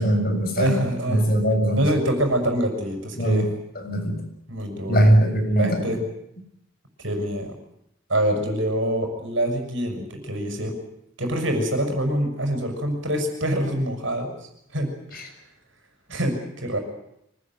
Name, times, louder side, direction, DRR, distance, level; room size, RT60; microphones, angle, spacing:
voice 1, 0.0-1.9 3.2-3.4 3.8-4.2 4.8-6.0 15.1-15.2, right 1 dB, 45° left, 4 dB, 6.6 m, -21 dB
voice 2, 0.6-1.3 1.7-3.5 4.5-5.1 5.5-6.0 7.0-7.5 8.1-10.7 11.2-14.3 14.7-15.3 16.1-16.8, right 1 dB, 65° right, 4 dB, 6.7 m, -25 dB
25.0 x 20.0 x 9.3 m, 0.77 s
head